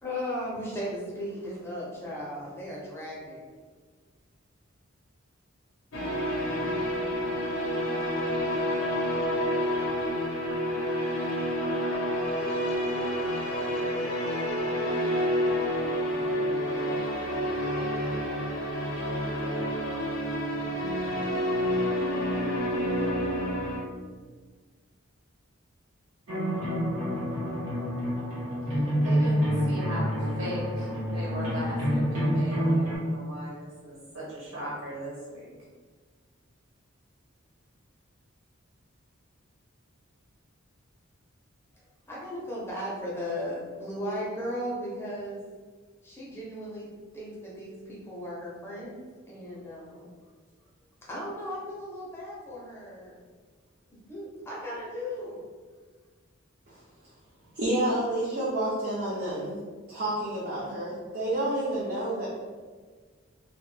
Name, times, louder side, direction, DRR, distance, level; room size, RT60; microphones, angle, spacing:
voice 1, 0.0-3.4 42.1-45.4 46.0-46.9 47.1-50.1 51.1-53.2 54.1-55.4, equal, 10° left, -6 dB, 0.5 m, -36 dB
sound 1, 5.9-23.8, equal, 70° left, 0.5 m, -29 dB
sound 2, 26.3-33.0, equal, 85° right, 0.8 m, -27 dB
voice 2, 28.7-35.5, right 1 dB, 65° right, -6 dB, 1.1 m, -38 dB
voice 3, 57.6-59.6 59.9-62.3, right 1 dB, 50° right, -7 dB, 0.4 m, -29 dB
2.2 x 2.1 x 3.1 m, 1.5 s
head